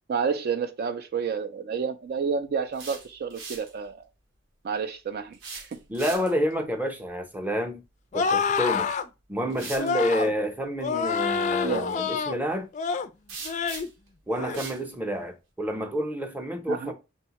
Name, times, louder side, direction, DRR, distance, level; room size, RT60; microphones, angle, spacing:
voice 1, 0.1-4.0 4.6-5.8 11.6-11.9 16.7-16.9, right 5 dB, 50° right, 0.3 m, -30 dB
sound 1, 2.5-3.7 5.3-6.5 8.6-8.7 9.5-9.9 13.3-14.1 14.5-14.8, right 4 dB, 85° right, 0.9 m, -40 dB
voice 2, 5.9-7.8 8.1-8.9 9.3-12.7 14.3-16.9, equal, 10° right, 0.6 m, -29 dB
sound 2, 8.1-9.1 9.8-10.3 10.8-12.4 12.7-13.1 13.4-13.9 14.3-14.6, left 5 dB, 35° left, 0.3 m, -27 dB
6.1 x 2.1 x 2.9 m
head